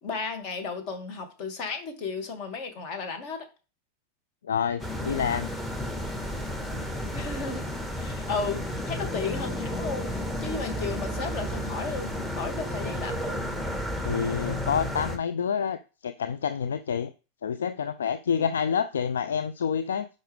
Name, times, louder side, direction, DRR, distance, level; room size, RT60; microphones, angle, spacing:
voice 1, 0.0-3.5 7.1-7.6 8.0-13.4, left 4 dB, 40° left, 5 dB, 2.3 m, -34 dB
voice 2, 4.4-5.5 14.0-17.1 17.4-20.1, left 7 dB, 65° left, 11 dB, 0.5 m, -28 dB
sound 1, 4.8-15.2, left 1 dB, 10° left, 1.6 m, -32 dB
10.0 x 5.2 x 3.5 m, 0.33 s
figure-of-eight pair, 90°, 0 cm